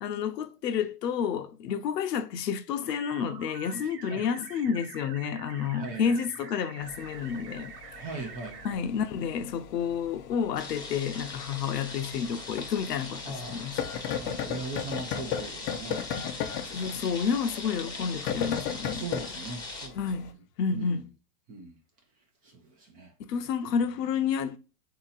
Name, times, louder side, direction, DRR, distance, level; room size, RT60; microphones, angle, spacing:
voice 1, 0.0-7.7 8.2-8.3 8.6-13.8 16.7-19.1 19.9-21.0 23.2-24.6, left 7 dB, 80° left, 0.8 m, -30 dB
sound 1, 2.9-8.8, right 7 dB, 75° right, 1.0 m, -46 dB
voice 2, 5.8-6.2 8.0-8.9 13.2-13.8 14.2-16.8 18.9-20.2 20.7-21.1 21.5-21.8 22.4-23.1 23.7-23.8, right 3 dB, 20° right, 0.5 m, -40 dB
sound 2, 6.8-20.3, left 8 dB, 35° left, 0.5 m, -37 dB
sound 3, 10.6-19.9, left 3 dB, 10° left, 0.9 m, -41 dB
4.1 x 2.8 x 3.9 m
hypercardioid pair, 140°, 48 cm